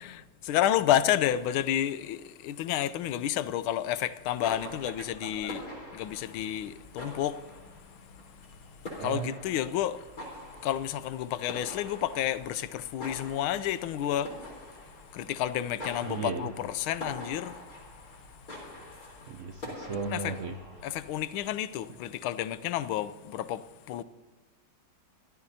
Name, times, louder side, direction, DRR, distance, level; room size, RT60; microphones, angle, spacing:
voice 1, 0.1-5.7 5.9-7.4 9.0-10.0 10.6-14.3 15.1-17.6 20.0-20.3 20.8-24.0, left 11 dB, 90° left, 1.5 m, -30 dB
sound 1, 4.2-21.5, left 1 dB, 40° left, 4.5 m, -45 dB
voice 2, 4.6-5.5 9.0-9.4 16.0-16.5 19.3-20.9, right 5 dB, 85° right, 0.6 m, -37 dB
26.0 x 13.0 x 2.8 m
omnidirectional pair, 2.2 m